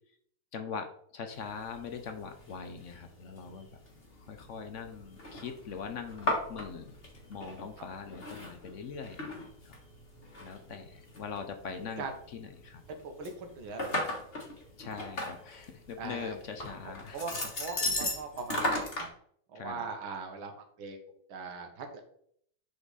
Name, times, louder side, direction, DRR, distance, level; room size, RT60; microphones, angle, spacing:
voice 1, 0.5-3.7 4.3-6.9 7.3-9.7 10.4-12.1 12.3-12.8 14.8-17.2 19.5-19.8, left 6 dB, 70° left, 7 dB, 0.7 m, -42 dB
sound 1, 1.3-19.1, left 1 dB, 30° left, 1.6 m, -38 dB
voice 2, 12.9-14.0 16.0-16.4 17.1-19.1 19.5-21.0 21.3-22.0, right 4 dB, 90° right, 4 dB, 2.0 m, -40 dB
7.9 x 5.3 x 4.1 m, 0.65 s
omnidirectional pair, 2.2 m